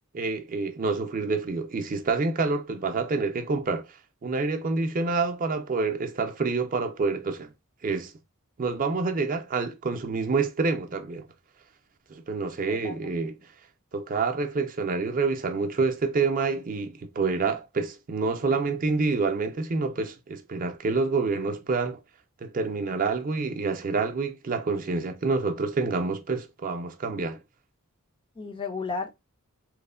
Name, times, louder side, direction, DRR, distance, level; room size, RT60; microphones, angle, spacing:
voice 1, 0.1-3.9 4.2-7.5 7.8-8.1 8.6-11.2 12.1-13.3 13.9-22.0 22.4-27.4, right 4 dB, 40° right, 0.4 m, -27 dB
voice 2, 12.7-13.2 28.4-29.1, left 4 dB, 20° left, 0.3 m, -34 dB
3.1 x 2.1 x 2.3 m
head